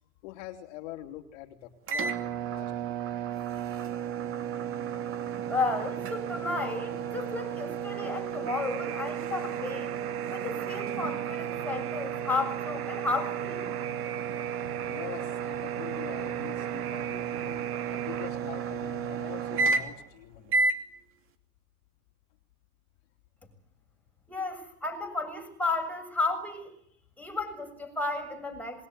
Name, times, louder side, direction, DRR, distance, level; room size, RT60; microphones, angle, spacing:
voice 1, 0.2-2.2 2.5-3.2 14.9-17.6 17.9-20.7, left 13 dB, 50° left, 4 dB, 3.2 m, -44 dB
sound 1, 1.9-20.1 20.5-20.8, right 6 dB, 30° right, 2.7 m, -33 dB
voice 2, 5.5-9.9 10.3-13.7 24.3-26.7 27.2-28.9, left 3 dB, 5° left, 2 dB, 7.0 m, -33 dB
Alarm, 8.5-18.3, right 12 dB, 80° right, 1.7 m, -41 dB
27.0 x 22.0 x 9.5 m, 0.67 s
supercardioid pair, 140°, 45 cm